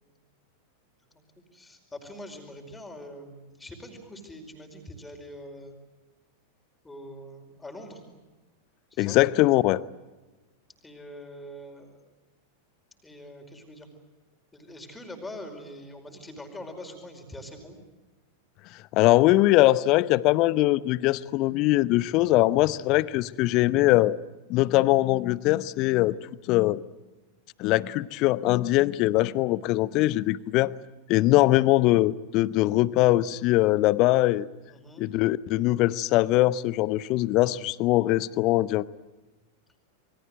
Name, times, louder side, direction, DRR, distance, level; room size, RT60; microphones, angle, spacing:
voice 1, 1.5-5.8 6.8-8.0 8.9-9.2 10.8-12.0 13.0-13.9 14.5-17.8 34.7-35.0, left 1 dB, 10° left, 4 dB, 4.9 m, -43 dB
voice 2, 9.0-9.8 18.9-24.2 24.5-26.1 26.5-26.8 27.6-30.7 31.1-34.5 35.0-38.8, left 17 dB, 40° left, 19 dB, 0.8 m, -22 dB
28.0 x 23.5 x 7.9 m, 1.2 s
figure-of-eight pair, 90°, 0 cm